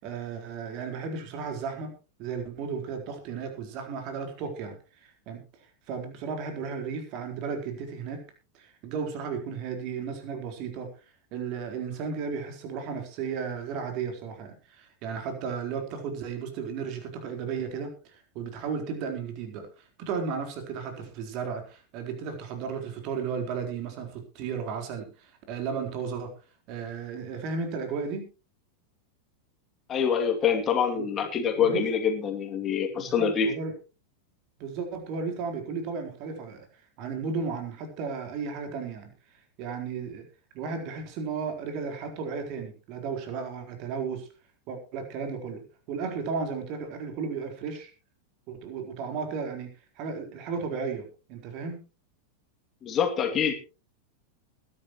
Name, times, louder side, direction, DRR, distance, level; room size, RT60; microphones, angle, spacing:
voice 1, 0.0-1.9 2.2-5.4 5.9-8.2 8.5-10.9 11.3-26.3 26.7-28.3 30.9-31.1 31.6-31.9 32.9-33.7 34.6-36.7 37.0-39.1 39.6-40.2 40.5-44.3 44.7-47.9 48.5-51.8, right 5 dB, 40° right, 5 dB, 4.1 m, -34 dB
voice 2, 29.9-33.5 52.8-53.5, left 7 dB, 25° left, 4 dB, 2.6 m, -25 dB
21.0 x 11.0 x 3.1 m, 0.33 s
figure-of-eight pair, 90°, 0 cm